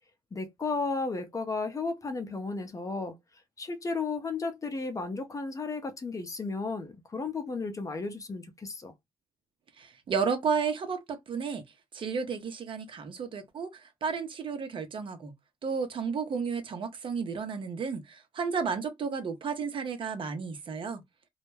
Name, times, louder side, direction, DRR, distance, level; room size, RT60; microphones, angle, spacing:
voice 1, 0.3-3.2 3.6-8.9, left 3 dB, 30° left, 0.6 m, -34 dB
voice 2, 9.8-11.6 11.9-15.3 15.6-21.0, right 5 dB, 50° right, 0.8 m, -32 dB
2.3 x 2.1 x 3.1 m
supercardioid pair, 65°, 11 cm